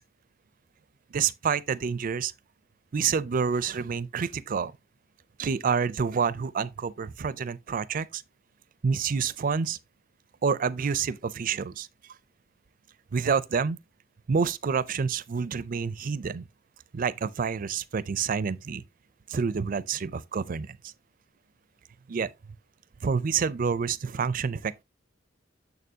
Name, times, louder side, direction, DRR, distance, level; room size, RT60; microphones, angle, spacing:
voice 1, 1.1-2.3 2.9-4.7 5.4-8.2 8.8-9.8 10.4-11.9 13.1-13.8 14.3-16.5 16.9-18.8 19.3-20.9 22.1-22.3 23.0-24.8, right 6 dB, 45° right, 0.4 m, -28 dB
6.8 x 6.7 x 2.7 m
head